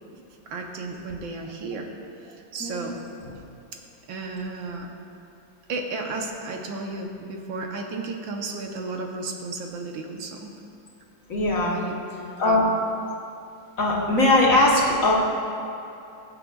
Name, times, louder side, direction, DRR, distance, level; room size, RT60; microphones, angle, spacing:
voice 1, 0.5-1.9 2.2-3.0 4.1-4.9 5.7-10.5 11.7-11.9 12.4-12.7, right 3 dB, 75° right, 2 dB, 1.7 m, -33 dB
voice 2, 11.3-11.7 12.4-12.7 13.8-15.1, left 2 dB, 45° left, -4 dB, 1.6 m, -20 dB
21.5 x 7.6 x 2.4 m, 2.7 s
omnidirectional pair, 2.2 m